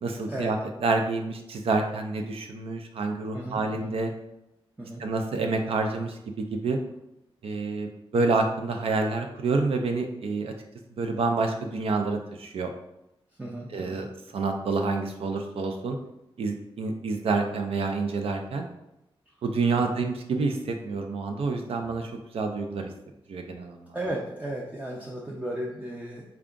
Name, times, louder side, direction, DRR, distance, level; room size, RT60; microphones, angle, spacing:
voice 1, 0.0-4.1 5.0-6.8 7.4-10.5 11.0-12.7 13.7-14.1 14.3-16.0 16.4-18.7 19.4-22.9 23.3-23.9, right 3 dB, 80° right, 4 dB, 0.4 m, -28 dB
voice 2, 3.3-4.0 4.8-5.0 13.4-14.0 19.7-20.0 23.9-26.2, right 1 dB, 15° right, -4 dB, 0.4 m, -35 dB
3.5 x 2.3 x 3.7 m, 0.87 s
wide cardioid pair, 165°, 10 cm